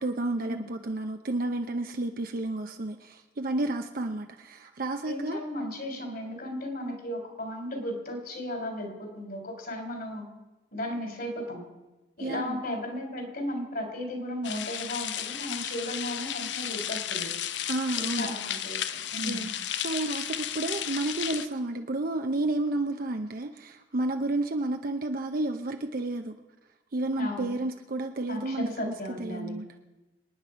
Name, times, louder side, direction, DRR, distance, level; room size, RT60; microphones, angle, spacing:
voice 1, 0.0-5.4 12.2-12.6 17.7-18.3 19.2-19.5 19.8-26.3 26.9-29.7, right 2 dB, 50° right, 0.7 m, -31 dB
voice 2, 5.0-10.3 10.7-11.6 12.2-17.3 17.9-18.8 19.1-19.4 27.2-27.5 28.3-29.6, left 1 dB, 55° left, 3.5 m, -35 dB
sound 1, 14.4-21.5, left 10 dB, 80° left, 0.7 m, -33 dB
26.5 x 9.5 x 5.0 m
head